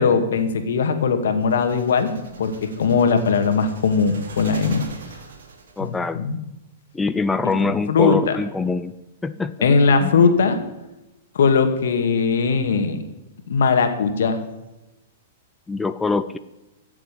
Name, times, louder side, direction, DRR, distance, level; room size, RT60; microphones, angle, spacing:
voice 1, 0.0-4.8 5.8-6.4 7.4-8.4 9.6-10.6 11.3-13.0 13.5-14.4, left 5 dB, 80° left, 7 dB, 2.1 m, -19 dB
sound 1, 1.4-6.0, right 4 dB, 85° right, 2.9 m, -41 dB
voice 2, 5.8-6.2 6.9-8.9 9.2-9.5 10.0-10.3 15.7-16.4, left 4 dB, 10° left, 11 dB, 0.6 m, -24 dB
14.5 x 7.4 x 8.5 m, 0.99 s
hypercardioid pair, 130°, 0 cm